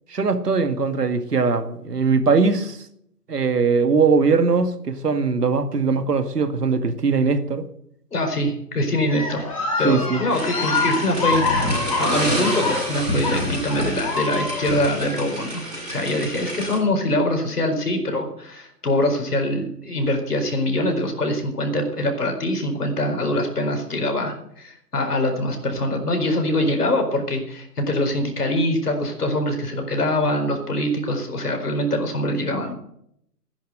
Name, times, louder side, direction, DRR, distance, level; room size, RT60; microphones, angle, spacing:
voice 1, 0.1-2.8 3.3-7.6 9.8-10.2, right 4 dB, 75° right, 2.0 m, -20 dB
voice 2, 8.1-9.4 9.8-32.7, left 1 dB, 70° left, 4.5 m, -24 dB
sound 1, 9.1-15.2, left 3 dB, 20° left, 3.4 m, -25 dB
sound 2, 10.3-16.8, right 1 dB, ahead, 1.6 m, -30 dB
14.0 x 10.5 x 7.9 m
hypercardioid pair, 180°, 48 cm